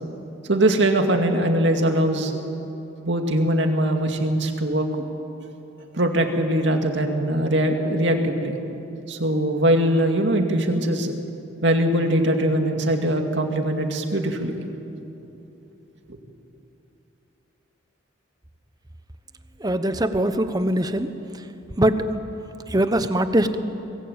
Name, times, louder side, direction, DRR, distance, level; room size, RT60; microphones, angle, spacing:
voice 1, 0.5-2.4 3.0-4.9 5.9-8.6 9.1-11.1 11.6-14.6 16.1-16.2, right 1 dB, 65° right, 3 dB, 2.4 m, -21 dB
voice 2, 19.6-21.1 21.8-22.0 22.7-23.6, right 1 dB, 20° right, 10 dB, 1.0 m, -21 dB
24.0 x 20.5 x 9.0 m, 3.0 s
head